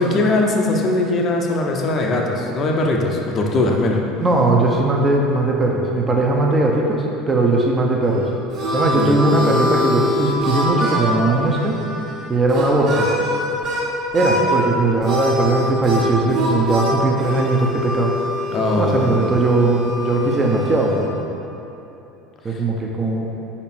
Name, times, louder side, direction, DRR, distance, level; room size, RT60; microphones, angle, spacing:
voice 1, 0.0-4.0 8.9-9.2 18.5-19.2 22.5-22.6, left 2 dB, 35° left, 1 dB, 0.7 m, -20 dB
voice 2, 4.2-8.3 8.7-11.8 12.3-13.1 14.1-18.2 18.7-21.2 22.4-23.3, right 2 dB, 25° right, -1 dB, 0.7 m, -19 dB
Harmonica, 8.0-13.8 14.1-14.6 15.0-21.0, left 1 dB, 45° right, 1.3 m, -24 dB
5.2 x 4.3 x 4.3 m, 3.0 s
figure-of-eight pair, 70°, 0 cm